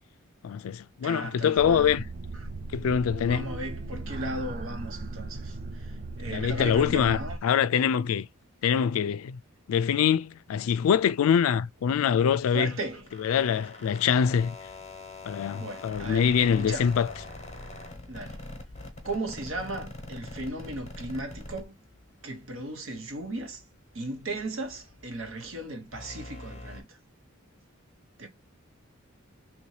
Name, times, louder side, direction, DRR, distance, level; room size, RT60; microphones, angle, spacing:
voice 1, 0.4-2.0 2.7-3.5 6.3-8.3 8.6-9.4 9.7-12.7 13.2-14.6 15.3-17.1, left 7 dB, 75° left, 0.3 m, -24 dB
voice 2, 1.0-2.0 2.3-2.5 3.2-7.4 12.5-13.3 15.5-16.9 18.1-18.4 19.0-21.7 22.2-23.6 23.9-27.0 28.2-28.3, right 2 dB, 65° right, 1.0 m, -36 dB
sound 1, 1.6-7.4, right 2 dB, 40° right, 0.4 m, -38 dB
sound 2, 12.0-22.6 22.9-26.8, left 2 dB, 30° left, 0.9 m, -44 dB
3.1 x 2.7 x 3.1 m
head